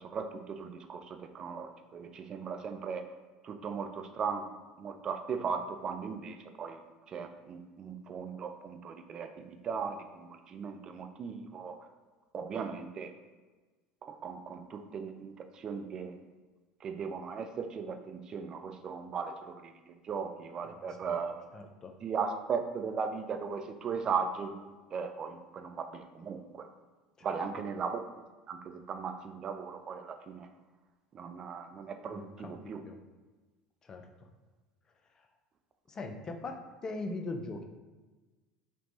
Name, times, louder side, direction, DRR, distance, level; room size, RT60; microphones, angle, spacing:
voice 1, 0.1-3.1 3.4-6.8 7.1-11.8 12.3-13.1 14.0-16.2 16.8-21.4 22.0-26.7 27.2-28.0 28.5-30.5 31.1-32.8, right 6 dB, 40° right, 7 dB, 0.3 m, -37 dB
voice 2, 20.7-21.2 21.5-21.9 27.2-27.3 32.1-32.5 32.8-33.0 33.8-34.0 35.9-37.6, left 2 dB, 30° left, 5 dB, 0.4 m, -40 dB
3.3 x 2.9 x 2.6 m, 1.3 s
hypercardioid pair, 70°, 2 cm